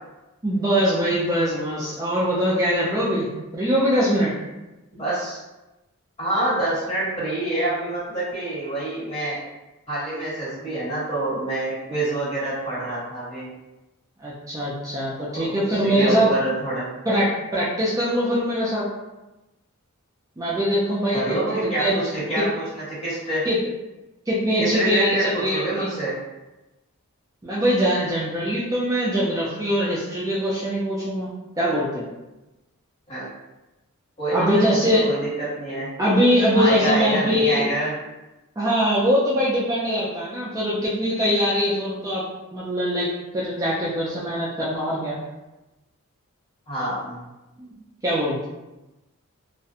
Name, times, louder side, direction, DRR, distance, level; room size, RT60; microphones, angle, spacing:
voice 1, 0.4-3.3 3.5-4.3 14.2-16.3 17.1-18.8 20.4-22.0 22.4-22.5 23.4-23.6 24.3-25.9 27.4-31.3 31.6-32.1 34.3-35.1 36.0-37.6 38.6-42.2 42.5-45.2 47.6-47.7 48.0-48.5, equal, 15° right, -7 dB, 0.4 m, -22 dB
voice 2, 4.9-5.4 6.2-9.4 9.9-13.5 15.3-16.9 21.1-23.4 24.6-26.2 33.1-33.3 34.2-35.9 36.5-37.9 46.7-47.2, right 1 dB, 25° left, -11 dB, 1.4 m, -27 dB
2.4 x 2.1 x 2.7 m, 1.0 s
head